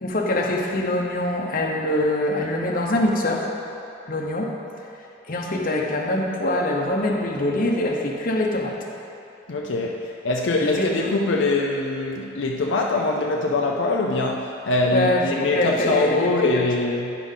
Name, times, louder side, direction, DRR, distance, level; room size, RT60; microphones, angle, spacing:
voice 1, 0.0-3.5 4.1-4.5 5.3-8.8 10.6-11.1 14.9-16.6, left 1 dB, 45° left, -1 dB, 0.8 m, -24 dB
voice 2, 9.5-17.2, left 2 dB, 75° left, 0 dB, 0.5 m, -23 dB
10.0 x 3.7 x 5.5 m, 2.7 s
head